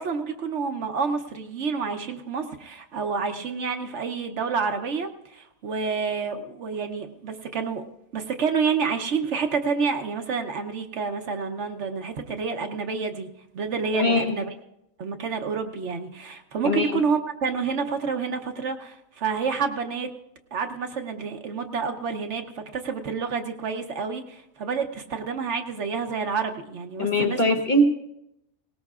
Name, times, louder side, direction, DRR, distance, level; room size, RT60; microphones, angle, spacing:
voice 1, 0.0-7.8 8.1-13.3 13.5-14.5 15.0-20.1 20.5-27.5, right 5 dB, 60° right, 6 dB, 1.0 m, -28 dB
voice 2, 13.9-14.4 16.6-16.9 27.0-27.8, left 1 dB, 40° left, 4 dB, 0.9 m, -21 dB
19.0 x 18.0 x 2.4 m, 0.84 s
omnidirectional pair, 1.4 m